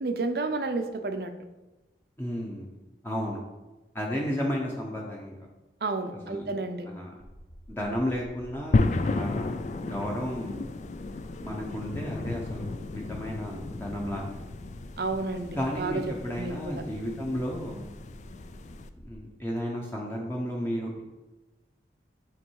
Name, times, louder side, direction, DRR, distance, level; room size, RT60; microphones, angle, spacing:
voice 1, 0.0-1.3 5.8-6.9 15.0-16.0 16.3-16.6, right 3 dB, 60° right, 7 dB, 0.6 m, -31 dB
voice 2, 2.2-2.8 3.0-3.4 3.9-5.3 6.1-6.5 6.9-7.1 7.7-10.6 11.4-14.3 15.5-17.9 19.0-21.0, equal, 15° left, -2 dB, 0.8 m, -33 dB
sound 1, 7.2-19.1, equal, 85° left, 2.4 m, -49 dB
sound 2, 8.7-18.9, left 3 dB, 40° left, 0.3 m, -33 dB
9.1 x 3.2 x 4.7 m, 1.1 s
head